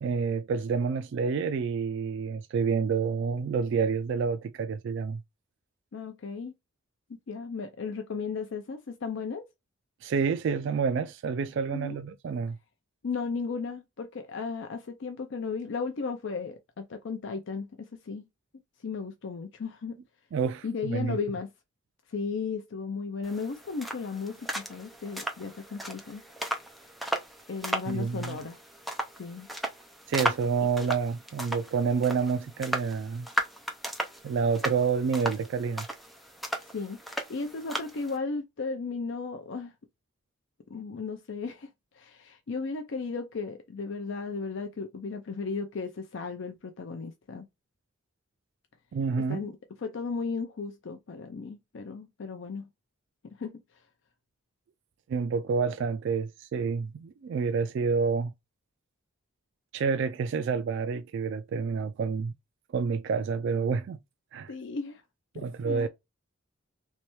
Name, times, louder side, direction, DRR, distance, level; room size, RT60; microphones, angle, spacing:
voice 1, 0.0-5.2 10.0-12.6 20.3-21.2 27.9-28.4 30.1-33.3 34.2-35.9 48.9-49.4 55.1-58.3 59.7-62.3 62.7-64.0 64.3-64.5 65.3-65.9, right 5 dB, 60° right, 0.3 m, -28 dB
voice 2, 5.9-6.5 7.3-9.4 11.7-12.0 13.0-18.2 18.8-20.0 20.6-21.5 22.1-26.2 27.5-28.6 29.2-29.5 36.6-39.7 40.7-41.7 41.9-47.5 49.2-49.5 49.8-52.7 53.4-53.6 64.5-65.0 65.3-65.9, left 4 dB, 65° left, 0.5 m, -35 dB
sound 1, 23.2-38.2, equal, ahead, 0.6 m, -36 dB
3.2 x 3.1 x 3.0 m
head